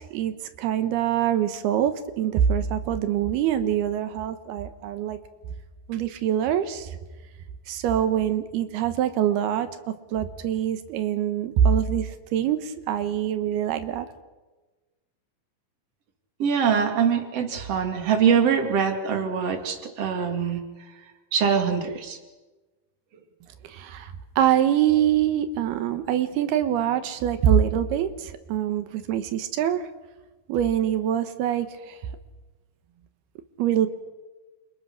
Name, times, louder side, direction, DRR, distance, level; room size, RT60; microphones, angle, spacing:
voice 1, 0.0-5.2 5.9-6.9 7.7-9.7 10.1-14.1 23.6-29.9 30.5-32.0 33.6-33.9, right 10 dB, 85° right, 9 dB, 3.2 m, -24 dB
voice 2, 16.4-20.6 21.3-22.2, right 7 dB, 40° right, 5 dB, 3.5 m, -23 dB
29.5 x 28.5 x 6.4 m, 1.2 s
omnidirectional pair, 4.5 m